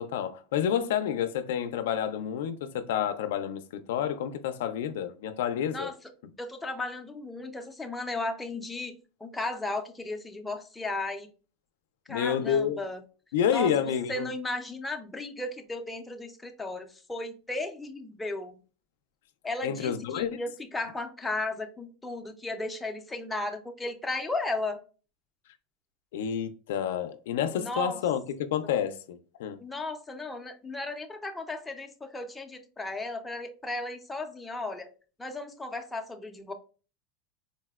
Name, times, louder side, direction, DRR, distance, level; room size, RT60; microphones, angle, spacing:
voice 1, 0.0-5.9 12.1-12.8 13.3-14.3 19.6-20.4 26.1-29.6, left 9 dB, 85° left, 0.3 m, -29 dB
voice 2, 6.4-8.9 9.2-11.3 12.1-13.0 13.5-18.6 19.4-24.8 27.5-28.0 29.6-34.9 35.2-36.5, left 2 dB, 5° left, 0.3 m, -35 dB
3.9 x 2.1 x 2.2 m
supercardioid pair, 160°, 0 cm